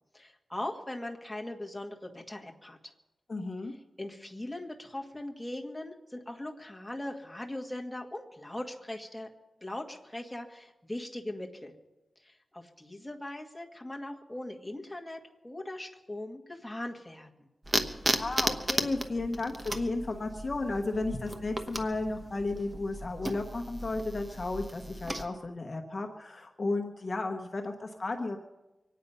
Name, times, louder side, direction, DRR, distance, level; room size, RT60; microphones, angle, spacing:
voice 1, 0.1-2.9 4.0-9.3 9.6-11.7 12.2-17.5, left 1 dB, 10° left, 1 dB, 1.7 m, -40 dB
voice 2, 3.3-3.7 18.1-28.4, left 2 dB, 40° left, 3 dB, 1.1 m, -33 dB
sound 1, 17.6-25.2, right 1 dB, 20° right, 1.1 m, -35 dB
24.5 x 9.5 x 5.6 m, 1.0 s
wide cardioid pair, 115°, 0 cm